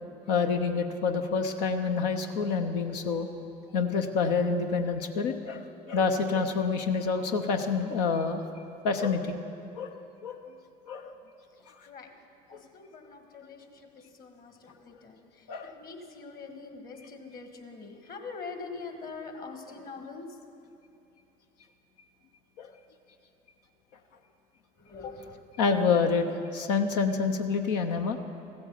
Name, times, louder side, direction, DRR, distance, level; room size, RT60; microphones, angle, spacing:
voice 1, 0.3-3.3 3.7-8.4 8.8-9.4 9.7-10.5 10.9-11.1 12.5-12.6 15.5-15.7 22.6-22.7 25.6-28.2, left 5 dB, 85° left, 6 dB, 0.7 m, -27 dB
voice 2, 12.7-13.6 14.2-15.2 15.6-20.3 24.9-25.4, left 4 dB, 45° left, 5 dB, 1.8 m, -43 dB
15.0 x 7.9 x 7.1 m, 2.7 s
hypercardioid pair, 65°, 21 cm